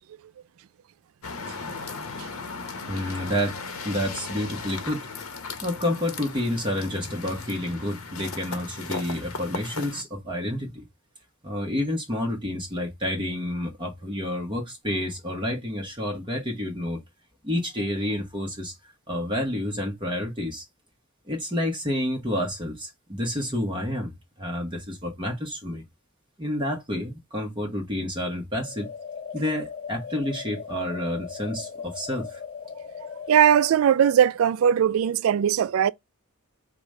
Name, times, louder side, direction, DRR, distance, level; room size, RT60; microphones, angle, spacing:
sound 1, 1.2-10.0, left 4 dB, 75° left, 0.8 m, -37 dB
voice 1, 2.9-3.6 3.8-5.1 5.6-10.8 11.4-17.0 17.4-18.7 19.1-20.6 21.3-24.1 24.4-25.8 26.4-28.9 29.3-32.4, left 1 dB, 20° right, 0.9 m, -29 dB
sound 2, 28.6-33.7, left 6 dB, 40° left, 0.5 m, -38 dB
voice 2, 33.3-35.9, right 9 dB, 70° right, 0.3 m, -19 dB
4.8 x 2.1 x 4.7 m
head